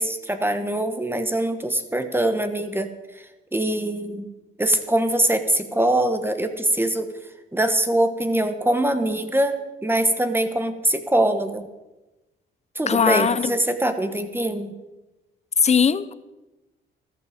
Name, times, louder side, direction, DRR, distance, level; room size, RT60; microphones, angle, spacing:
voice 1, 0.0-4.3 4.6-7.1 7.5-11.7 12.7-14.7, right 1 dB, 10° right, 8 dB, 1.2 m, -23 dB
voice 2, 12.9-13.5 15.6-16.1, left 6 dB, 35° left, 16 dB, 0.7 m, -19 dB
14.0 x 12.0 x 5.1 m, 1.1 s
cardioid pair, 90°, 20 cm